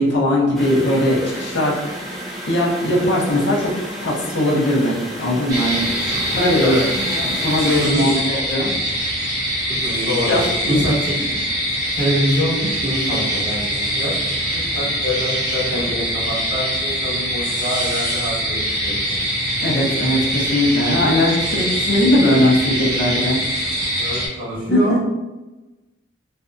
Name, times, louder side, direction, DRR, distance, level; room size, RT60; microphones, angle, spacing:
voice 1, 0.0-1.8 2.5-3.7 4.0-8.7 10.3-10.8 19.6-23.4 24.7-25.0, left 1 dB, 65° left, -4 dB, 0.7 m, -19 dB
sound 1, 0.5-7.9, equal, ahead, 0.3 m, -32 dB
sound 2, 5.5-24.3, equal, 20° right, 0.8 m, -23 dB
voice 2, 9.7-10.4 10.7-11.4 11.9-14.1 14.5-19.2 24.0-25.0, equal, 50° right, -8 dB, 1.2 m, -25 dB
2.6 x 2.3 x 2.4 m, 1.1 s
head